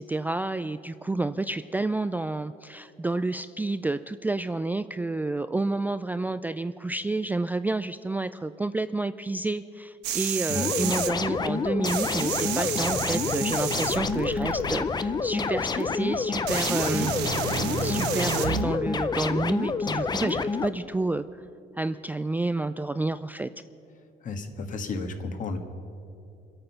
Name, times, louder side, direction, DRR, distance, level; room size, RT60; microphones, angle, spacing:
voice 1, 0.0-17.1 17.8-21.2 21.8-23.5, right 2 dB, 10° right, 11 dB, 0.3 m, -29 dB
sound 1, 10.0-11.1 11.9-14.8 15.8-15.9 16.5-18.6 20.3-20.4, right 8 dB, 90° right, 1.1 m, -30 dB
sound 2, 10.6-20.7, left 4 dB, 25° left, 0.6 m, -28 dB
voice 2, 24.2-25.6, left 3 dB, 50° left, 6 dB, 1.6 m, -33 dB
26.0 x 8.8 x 5.7 m, 2.7 s
cardioid pair, 110°, 17 cm